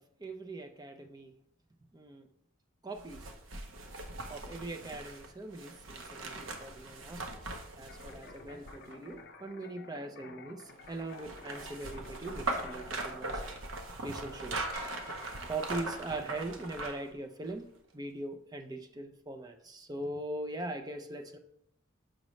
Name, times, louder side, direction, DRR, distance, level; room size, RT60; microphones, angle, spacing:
voice 1, 0.2-1.3 1.9-2.3 2.8-3.2 4.3-7.3 7.8-13.4 14.0-14.7 15.5-17.7 17.9-21.4, right 2 dB, 20° right, 5 dB, 0.4 m, -41 dB
sound 1, 3.0-9.1 10.8-17.1 17.5-17.6, right 2 dB, 70° right, 0.7 m, -40 dB
sound 2, 7.9-12.8, left 4 dB, 50° left, 0.6 m, -52 dB
sound 3, 14.7-17.1, equal, 40° right, 1.7 m, -49 dB
6.3 x 5.2 x 3.1 m, 0.74 s
head